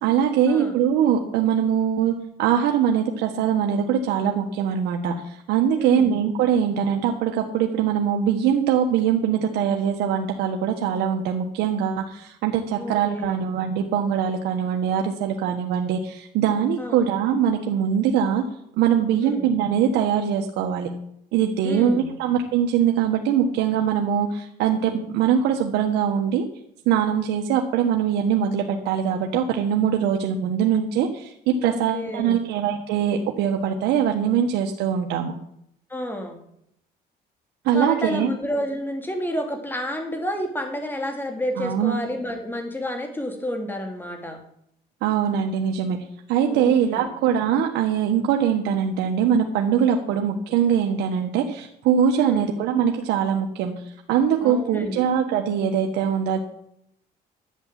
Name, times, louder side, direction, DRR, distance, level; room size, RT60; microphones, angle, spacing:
voice 1, 0.0-18.4 18.8-20.9 21.3-26.4 26.9-35.3 37.6-38.3 41.6-42.0 45.0-46.0 46.3-53.7 54.1-56.4, right 8 dB, 85° right, 3 dB, 1.3 m, -22 dB
voice 2, 5.8-6.1 12.8-13.4 16.8-17.1 19.2-19.4 21.6-22.1 31.6-32.4 35.9-36.4 37.7-44.4 46.5-47.1 52.1-52.5 54.4-55.1, equal, 10° left, 3 dB, 2.8 m, -30 dB
11.0 x 8.2 x 7.5 m, 0.73 s
cardioid pair, 110°, 17 cm